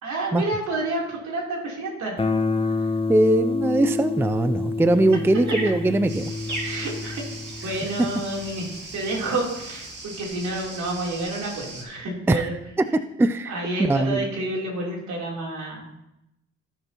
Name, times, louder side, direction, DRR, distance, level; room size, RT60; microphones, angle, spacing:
voice 1, 0.0-2.2 2.6-2.9 5.5-5.6 6.6-12.6 13.5-16.0, right 2 dB, 70° right, -3 dB, 3.6 m, -30 dB
Guitar, 2.2-8.9, left 3 dB, 20° left, 0.8 m, -28 dB
voice 2, 3.1-6.3 12.3-12.5 13.2-13.5 13.8-14.2, right 2 dB, 10° right, 11 dB, 0.4 m, -21 dB
sound 1, 4.9-11.2, right 1 dB, 35° right, 3.2 m, -40 dB
sound 2, 6.1-11.8, right 3 dB, 55° right, 2.8 m, -40 dB
16.5 x 6.6 x 3.0 m, 0.87 s
cardioid pair, 90°, 30 cm